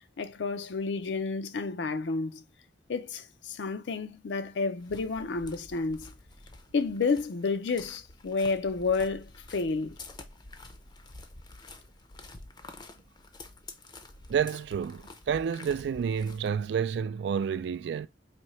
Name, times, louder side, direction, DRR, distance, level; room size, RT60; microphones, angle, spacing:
voice 1, 0.2-2.4 2.9-6.1 6.7-10.0, left 4 dB, 75° left, 0.5 m, -30 dB
sound 1, 4.8-16.7, left 2 dB, 25° left, 0.5 m, -49 dB
voice 2, 14.3-18.1, right 7 dB, 70° right, 0.3 m, -29 dB
4.3 x 2.8 x 2.9 m
head